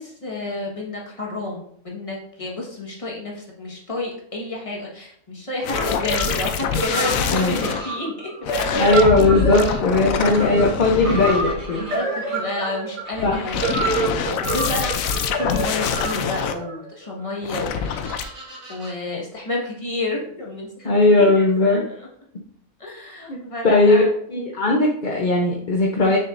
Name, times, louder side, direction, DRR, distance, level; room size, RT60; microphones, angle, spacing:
voice 1, 0.0-9.1 11.2-11.3 11.8-18.0 18.4-22.1 22.8-24.1, left 2 dB, 25° left, -2 dB, 1.5 m, -31 dB
sound 1, 5.6-7.8 8.4-11.9 13.1-16.5 17.4-18.2, left 7 dB, 75° left, 1.0 m, -25 dB
sound 2, 5.7-17.3, right 3 dB, 60° right, 2.0 m, -28 dB
Baby Parrot, 6.9-7.9 8.9-9.8 11.0-12.0 13.0-14.0 15.1-15.9 17.7-18.9, right 1 dB, 75° right, 3.5 m, -41 dB
voice 2, 7.3-7.7 8.7-11.9 13.2-13.4 20.8-21.8 23.3-23.4 23.6-24.0 24.3-26.2, left 2 dB, 45° left, -1 dB, 0.8 m, -18 dB
6.8 x 6.4 x 2.6 m, 0.67 s
omnidirectional pair, 1.5 m